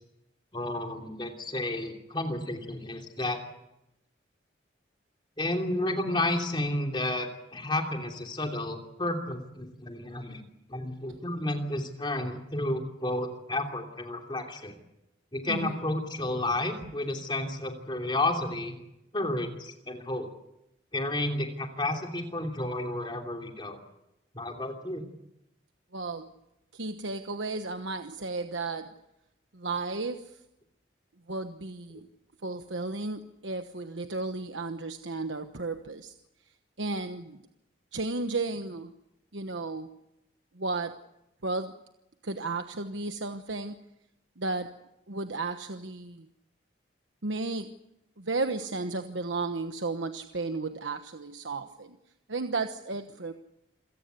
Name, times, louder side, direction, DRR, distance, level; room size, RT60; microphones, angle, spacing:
voice 1, 0.5-3.4 5.4-10.4 10.7-14.8 15.3-18.8 19.1-20.3 20.9-23.8 24.3-25.0, left 1 dB, 25° left, 3 dB, 3.0 m, -31 dB
voice 2, 25.9-26.3 26.7-28.9 29.5-30.3 31.3-32.1 32.4-36.1 36.8-37.4 37.9-38.9 39.3-39.9 40.6-41.0 41.4-41.7 42.2-43.8 44.4-44.7 45.1-46.3 47.2-47.7 48.2-52.0 52.3-53.3, right 3 dB, 80° right, 7 dB, 1.2 m, -33 dB
27.5 x 17.5 x 8.2 m, 0.87 s
head